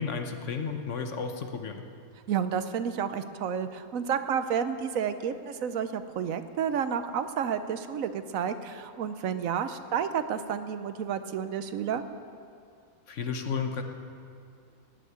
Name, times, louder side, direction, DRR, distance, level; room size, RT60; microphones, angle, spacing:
voice 1, 0.0-1.8 13.1-13.8, left 5 dB, 60° left, 5 dB, 1.3 m, -32 dB
voice 2, 2.3-12.0, right 7 dB, 70° right, 10 dB, 1.1 m, -30 dB
17.5 x 6.5 x 9.2 m, 2.4 s
omnidirectional pair, 1.5 m